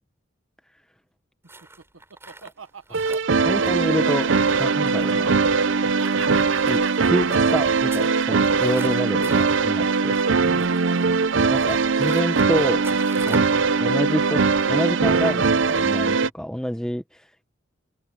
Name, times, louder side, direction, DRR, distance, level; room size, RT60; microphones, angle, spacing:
Laughter, 1.4-5.7 6.0-10.4, right 7 dB, 90° right, 1.2 m, -38 dB
sound 1, 1.5-13.6, right 2 dB, 10° right, 6.7 m, -44 dB
sound 2, 2.9-16.3, right 4 dB, 70° right, 0.7 m, -21 dB
voice 1, 3.1-4.3 4.6-5.4 6.7-10.8 11.5-12.9 13.3-13.4 13.8-14.4 14.7-17.4, equal, 5° left, 0.8 m, -28 dB
open air
head